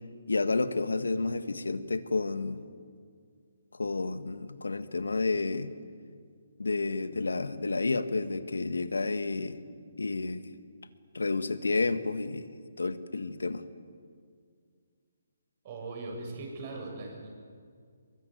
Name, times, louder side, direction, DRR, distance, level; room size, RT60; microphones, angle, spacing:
voice 1, 0.3-2.6 3.7-5.7 6.6-9.6 10.0-10.4 11.1-12.5 12.8-13.6, left 3 dB, 85° left, 12 dB, 1.6 m, -30 dB
voice 2, 15.6-17.3, right 2 dB, 40° right, 2 dB, 7.2 m, -39 dB
22.5 x 22.5 x 9.4 m, 2.1 s
hypercardioid pair, 150°, 0 cm